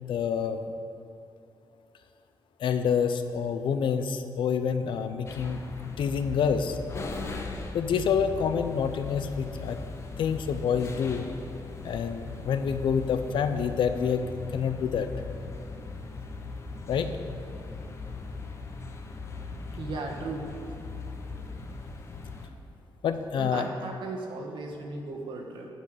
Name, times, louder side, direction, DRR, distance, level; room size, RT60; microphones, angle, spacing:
voice 1, 0.1-0.6 2.6-5.6 6.0-6.8 7.7-9.8 10.2-11.3 11.8-14.2 14.5-15.1 16.9-17.1 23.0-23.7, left 7 dB, 80° left, 9 dB, 0.7 m, -27 dB
sound 1, 5.3-22.5, left 3 dB, 35° left, 0.8 m, -39 dB
voice 2, 19.8-20.5 23.4-25.7, right 3 dB, 75° right, 1 dB, 1.5 m, -36 dB
10.5 x 5.6 x 7.9 m, 2.7 s
wide cardioid pair, 170°, 8 cm